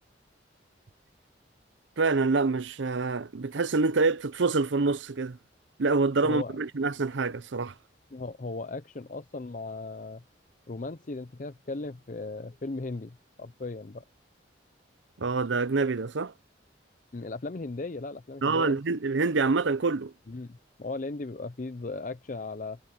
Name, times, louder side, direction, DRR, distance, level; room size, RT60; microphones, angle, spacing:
voice 1, 2.0-5.4 5.8-7.7 15.2-16.3 18.4-20.1, right 3 dB, 75° right, 0.7 m, -26 dB
voice 2, 6.2-6.6 8.1-10.2 10.7-14.0 17.1-18.8 20.3-22.8, left 3 dB, 40° left, 0.6 m, -37 dB
head